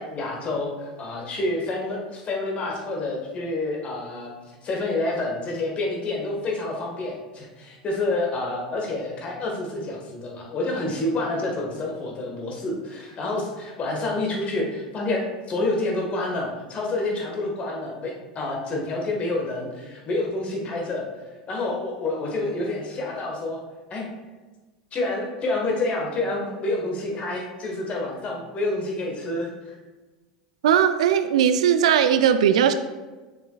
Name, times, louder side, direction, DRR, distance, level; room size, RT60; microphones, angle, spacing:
voice 1, 0.0-21.0 21.5-23.6 23.9-24.1 24.9-29.8, left 2 dB, 30° left, -1 dB, 1.6 m, -28 dB
voice 2, 30.6-32.7, right 9 dB, 65° right, 11 dB, 0.3 m, -18 dB
6.8 x 6.6 x 2.4 m, 1.3 s
figure-of-eight pair, 80°, 4 cm